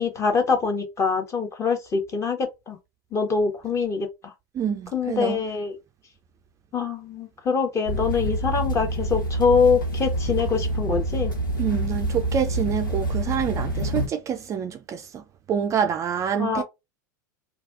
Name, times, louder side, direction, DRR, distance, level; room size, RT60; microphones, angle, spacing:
voice 1, 0.0-2.8 3.1-4.3 4.9-5.7 6.7-11.3 16.4-16.6, left 5 dB, 25° left, 1.1 m, -24 dB
voice 2, 4.5-5.4 11.6-16.6, right 7 dB, 30° right, 0.4 m, -27 dB
sound 1, 7.8-14.1, right 1 dB, 90° left, 1.2 m, -27 dB
3.2 x 2.3 x 2.5 m
hypercardioid pair, 95°, 11 cm